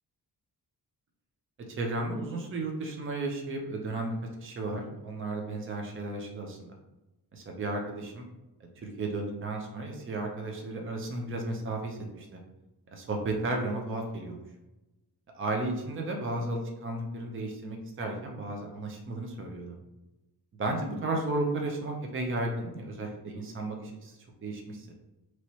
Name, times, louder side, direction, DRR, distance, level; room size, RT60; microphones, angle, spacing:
voice 1, 1.7-4.1 4.4-6.7 7.3-8.2 8.8-12.4 12.9-14.4 15.3-19.7 20.6-24.9, right 2 dB, 35° right, 2 dB, 0.6 m, -34 dB
3.0 x 2.8 x 4.5 m, 0.99 s
wide cardioid pair, 150°, 38 cm